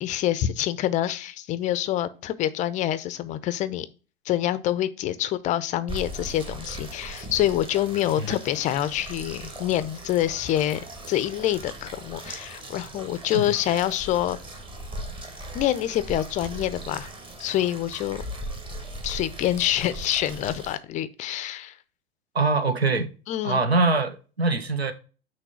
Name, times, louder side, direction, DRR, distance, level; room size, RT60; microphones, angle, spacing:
voice 1, 0.0-3.9 4.3-14.4 15.5-17.1 17.4-18.2 19.0-21.8 23.3-23.6, left 12 dB, 25° left, 0.4 m, -26 dB
sound 1, 5.9-20.8, right 1 dB, 15° right, 1.1 m, -39 dB
voice 2, 22.3-23.1 23.4-24.9, right 3 dB, 85° right, 0.7 m, -23 dB
5.9 x 3.2 x 5.6 m
figure-of-eight pair, 85°, 31 cm